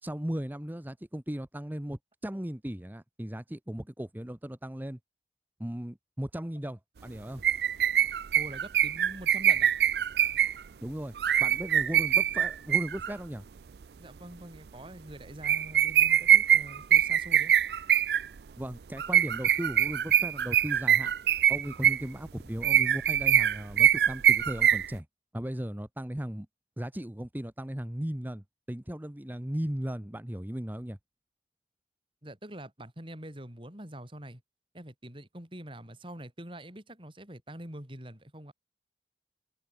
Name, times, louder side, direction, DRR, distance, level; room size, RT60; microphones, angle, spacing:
voice 1, 0.0-5.0 5.6-7.4 10.8-11.1 11.4-13.4 18.6-21.1 21.5-25.1 25.3-26.5 26.8-31.0, equal, 10° right, 0.9 m, -37 dB
sound 1, 7.4-10.6 11.2-13.1 15.4-18.3 19.0-22.0 22.6-25.0, right 10 dB, 65° right, 0.4 m, -24 dB
voice 2, 8.3-9.7 14.0-17.5 32.2-34.4 34.7-38.5, right 1 dB, 30° right, 4.4 m, -45 dB
head